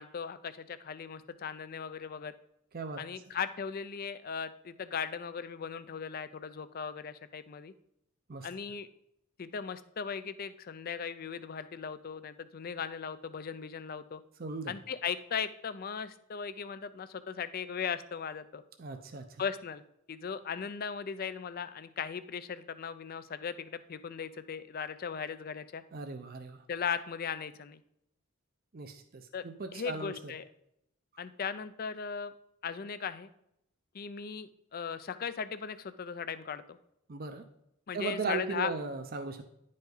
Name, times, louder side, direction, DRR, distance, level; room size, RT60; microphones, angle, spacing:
voice 1, 0.0-2.3 3.0-7.7 8.4-8.9 9.4-14.2 14.7-18.6 19.4-19.8 20.1-25.8 26.7-27.8 29.3-29.4 29.7-30.4 31.2-32.3 32.6-33.3 33.9-36.8 37.9-38.7, left 6 dB, 45° left, 13 dB, 0.4 m, -38 dB
voice 2, 14.4-14.7 18.8-19.4 25.9-26.6 28.7-30.3 37.1-37.5 37.9-39.4, right 4 dB, 45° right, 6 dB, 0.6 m, -38 dB
10.0 x 5.4 x 3.8 m, 0.78 s
head